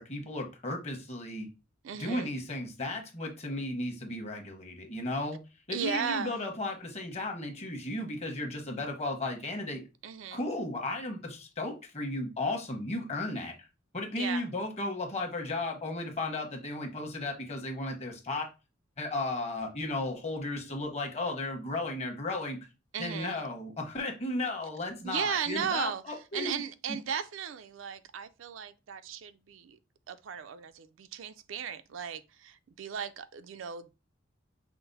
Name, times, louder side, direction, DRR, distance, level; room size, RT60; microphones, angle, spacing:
voice 1, 0.0-1.5 1.9-5.4 5.7-9.8 10.3-13.7 13.9-18.5 19.0-22.6 23.0-26.6, left 2 dB, 35° left, 1.1 m, -35 dB
voice 2, 1.8-2.3 5.7-6.3 10.0-10.4 14.1-14.4 22.9-23.4 25.0-26.0 26.3-29.8 30.1-33.9, right 7 dB, 80° right, 0.4 m, -36 dB
5.8 x 2.0 x 4.0 m
head